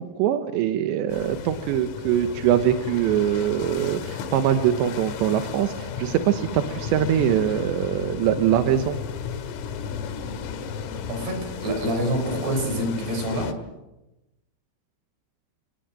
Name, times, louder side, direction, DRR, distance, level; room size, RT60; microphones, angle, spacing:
voice 1, 0.2-9.0, right 10 dB, 75° right, 7 dB, 2.9 m, -23 dB
sound 1, 1.1-13.5, left 7 dB, 85° left, 4.6 m, -34 dB
voice 2, 11.1-13.5, equal, 55° right, 5 dB, 7.9 m, -26 dB
30.0 x 19.5 x 7.6 m, 1.0 s
omnidirectional pair, 5.9 m